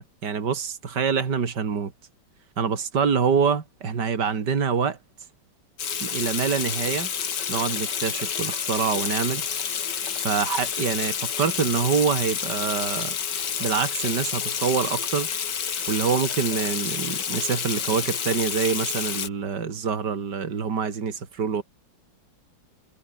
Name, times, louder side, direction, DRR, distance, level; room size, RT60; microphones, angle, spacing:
voice 1, 0.0-1.9 2.6-5.0 6.0-7.1 7.5-9.5 10.1-13.2 13.6-15.3 15.9-21.6, right 6 dB, 60° right, 3.0 m, -26 dB
Water tap faucet / Sink (filling or washing), 5.8-19.3, left 7 dB, 65° left, 2.2 m, -29 dB
omnidirectional pair, 2.1 m